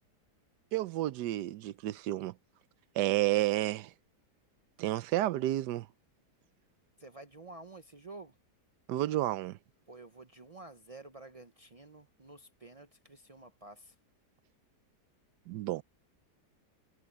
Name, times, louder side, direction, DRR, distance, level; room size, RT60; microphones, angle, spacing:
voice 1, 0.7-2.3 2.9-3.9 4.8-5.9 8.9-9.6 15.5-15.8, right 15 dB, 85° right, 1.2 m, -31 dB
voice 2, 7.0-8.4 9.9-13.9, right 2 dB, 50° right, 0.4 m, -51 dB
omnidirectional pair, 1.8 m